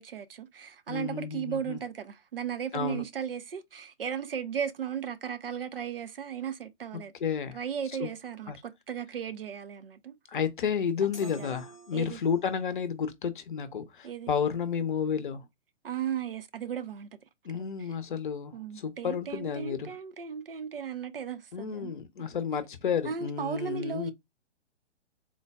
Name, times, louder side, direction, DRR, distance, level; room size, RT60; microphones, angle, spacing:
voice 1, 0.0-7.1 7.5-10.1 11.2-11.5 11.9-12.2 14.0-14.3 15.8-17.1 17.5-17.6 18.5-21.9 22.2-22.3 23.0-24.1, right 8 dB, 55° right, 0.6 m, -36 dB
voice 2, 0.9-1.8 2.7-3.0 7.2-7.6 8.0-8.1 8.5-8.6 10.3-15.4 17.4-19.9 21.5-24.1, left 7 dB, 45° left, 0.7 m, -31 dB
sound 1, 11.1-12.6, right 2 dB, 15° left, 0.4 m, -49 dB
3.8 x 2.2 x 3.3 m
figure-of-eight pair, 130°, 35 cm